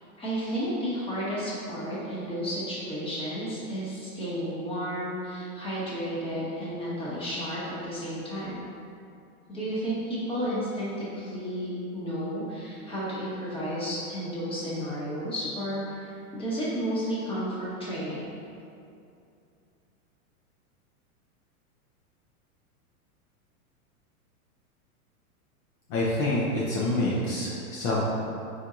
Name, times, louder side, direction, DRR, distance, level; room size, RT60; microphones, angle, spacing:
voice 1, 0.2-8.6 9.5-18.3, equal, 10° left, -8 dB, 1.2 m, -32 dB
voice 2, 25.9-28.1, left 1 dB, 45° left, -6 dB, 0.8 m, -27 dB
4.4 x 4.3 x 2.5 m, 2.6 s
hypercardioid pair, 130°, 44 cm